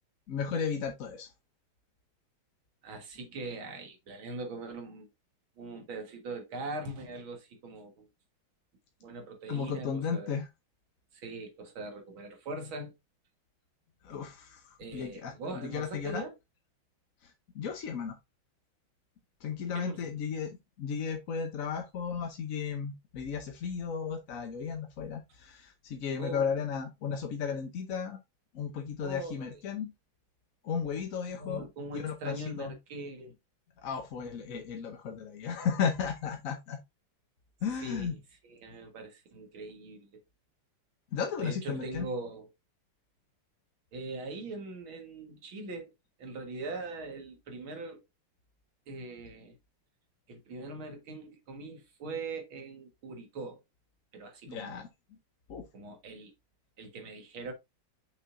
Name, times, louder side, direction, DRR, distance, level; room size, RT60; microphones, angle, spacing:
voice 1, 0.3-1.3 9.5-10.4 14.0-14.6 14.9-16.2 17.5-18.1 19.4-20.5 20.8-28.2 28.5-29.9 30.6-31.7 31.9-32.7 33.8-36.8 37.6-38.2 41.1-42.1 54.5-54.8 55.5-55.6, left 6 dB, 55° left, 1.0 m, -34 dB
voice 2, 2.8-5.1 5.6-8.1 9.0-10.4 11.1-12.9 14.8-16.4 19.7-20.2 26.2-26.5 29.0-29.6 31.3-33.3 37.8-38.2 38.4-40.2 41.4-42.5 43.9-45.9 46.2-48.0 48.9-49.6 50.3-53.6 54.1-54.8 55.7-56.3 56.8-57.5, right 2 dB, 75° right, 2.4 m, -41 dB
6.6 x 5.7 x 2.6 m
omnidirectional pair, 2.2 m